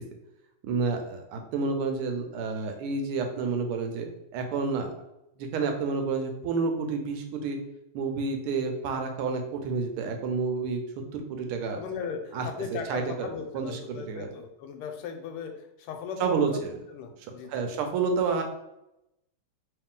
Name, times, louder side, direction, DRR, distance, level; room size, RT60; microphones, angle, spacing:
voice 1, 0.6-4.9 5.4-7.6 7.9-10.8 11.1-11.8 12.3-12.5 12.7-13.3 13.5-14.3 16.2-16.7 17.5-18.4, right 4 dB, 85° right, 5 dB, 1.5 m, -29 dB
voice 2, 11.7-17.8, left 6 dB, 90° left, 4 dB, 1.5 m, -38 dB
3.2 x 3.0 x 3.6 m, 0.88 s
omnidirectional pair, 2.4 m